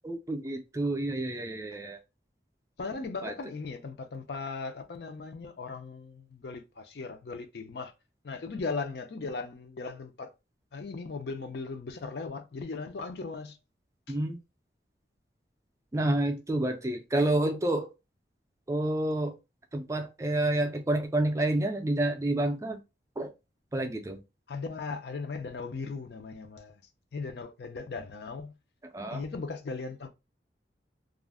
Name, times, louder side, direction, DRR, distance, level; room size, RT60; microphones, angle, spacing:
voice 1, 0.0-2.0 3.2-3.3 14.1-14.4 15.9-17.9 18.7-19.3 19.7-22.8 23.2-23.3 23.7-24.2 28.9-29.2, right 1 dB, 15° right, 0.3 m, -29 dB
voice 2, 2.8-7.9 8.2-10.3 10.7-13.6 14.1-14.2 24.5-26.8 27.1-28.5 29.1-30.1, left 4 dB, 65° left, 0.4 m, -38 dB
2.4 x 2.1 x 3.4 m
head